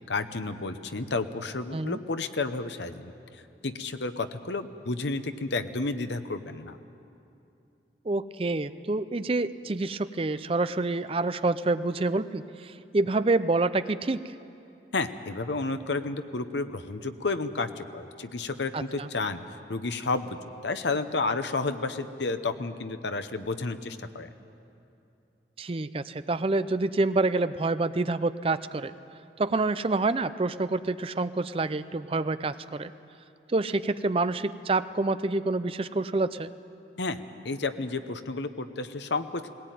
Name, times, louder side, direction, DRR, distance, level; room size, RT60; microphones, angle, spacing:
voice 1, 0.0-6.8 14.9-19.4 19.7-24.3 37.0-39.5, left 3 dB, 80° left, 9 dB, 0.9 m, -31 dB
voice 2, 8.1-14.2 18.7-19.1 25.6-28.9 29.4-32.9 33.5-36.5, right 3 dB, 30° right, 13 dB, 0.5 m, -27 dB
19.0 x 18.0 x 9.2 m, 2.7 s
head